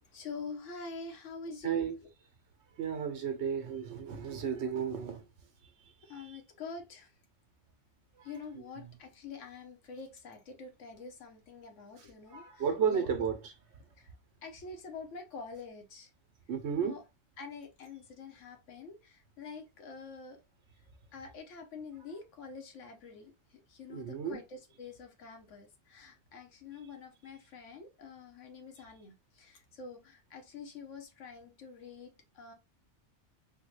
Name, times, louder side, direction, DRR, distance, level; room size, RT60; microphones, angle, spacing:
voice 1, 0.1-1.9 6.0-7.1 8.2-13.1 14.0-14.1 14.4-16.1 16.8-17.0 17.4-20.4 21.1-23.3 23.7-32.5, left 4 dB, 85° left, 1.2 m, -46 dB
voice 2, 1.6-1.9 2.8-5.2 8.5-8.6 12.3-13.4 16.5-17.0 23.9-24.4, right 7 dB, 70° right, 1.0 m, -33 dB
3.6 x 2.2 x 3.1 m
omnidirectional pair, 1.2 m